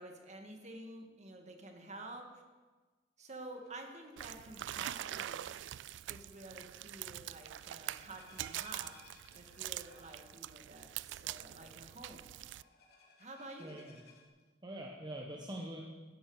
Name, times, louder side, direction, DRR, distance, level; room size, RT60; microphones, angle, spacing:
voice 1, 0.0-2.4 3.2-5.5 6.1-9.0 9.3-12.3 13.2-13.8, right 2 dB, 40° right, 4 dB, 2.0 m, -50 dB
sound 1, 3.3-14.3, left 4 dB, 60° left, 3.1 m, -64 dB
sound 2, 4.2-12.6, right 13 dB, 80° right, 0.3 m, -44 dB
voice 2, 13.6-14.1 14.6-15.8, right 1 dB, 25° right, -1 dB, 1.2 m, -44 dB
15.5 x 12.5 x 5.0 m, 1.3 s
head